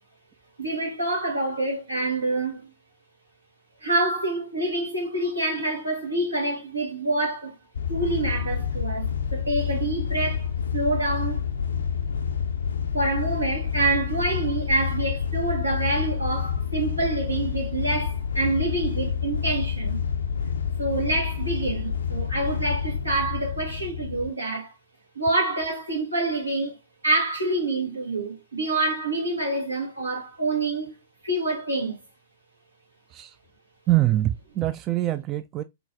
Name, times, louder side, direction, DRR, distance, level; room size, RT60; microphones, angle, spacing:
voice 1, 0.6-2.7 3.8-7.6 7.9-11.4 12.9-20.0 20.8-24.7 25.1-26.8 27.0-31.0 31.2-32.0, right 2 dB, 85° right, 1.7 m, -27 dB
sound 1, 7.7-24.3, left 7 dB, 65° left, 0.4 m, -28 dB
voice 2, 33.9-35.6, right 15 dB, 30° right, 0.3 m, -24 dB
3.9 x 3.9 x 2.5 m
figure-of-eight pair, 110°, 0 cm